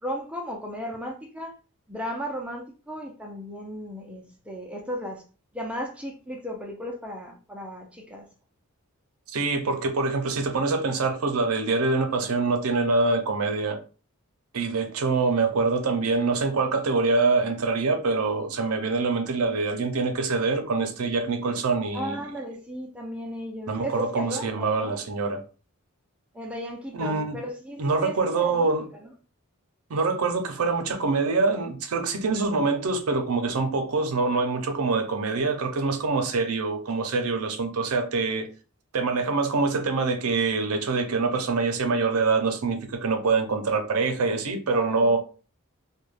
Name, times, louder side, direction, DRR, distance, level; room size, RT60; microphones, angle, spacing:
voice 1, 0.0-1.5 1.9-5.2 5.5-8.3 21.9-25.0 26.3-28.7 44.7-45.2, equal, 5° right, 0.4 m, -35 dB
voice 2, 9.3-13.8 14.5-22.2 23.7-25.4 26.9-27.4 27.8-28.9 29.9-38.5 38.9-45.2, right 3 dB, 75° right, 0.5 m, -25 dB
2.3 x 2.2 x 3.2 m
head